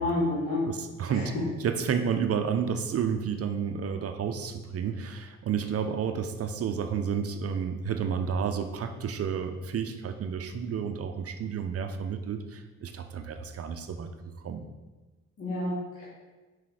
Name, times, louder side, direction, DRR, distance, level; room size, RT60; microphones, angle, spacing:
voice 1, 0.0-0.7 1.1-1.4 15.4-16.0, left 2 dB, 50° left, -9 dB, 2.2 m, -29 dB
voice 2, 0.7-1.3 1.6-14.1 14.4-14.6, right 7 dB, 50° right, 7 dB, 0.6 m, -31 dB
5.9 x 4.9 x 4.9 m, 1.2 s
cardioid pair, 90°, 30 cm